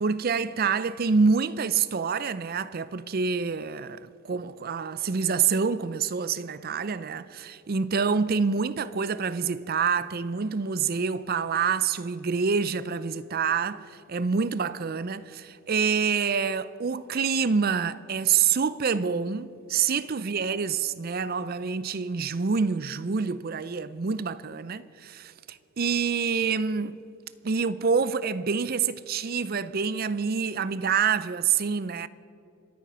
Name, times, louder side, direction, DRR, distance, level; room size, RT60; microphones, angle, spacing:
voice 1, 0.0-27.0 27.4-32.1, right 5 dB, 40° right, 0.4 m, -27 dB
27.0 x 9.0 x 5.6 m
head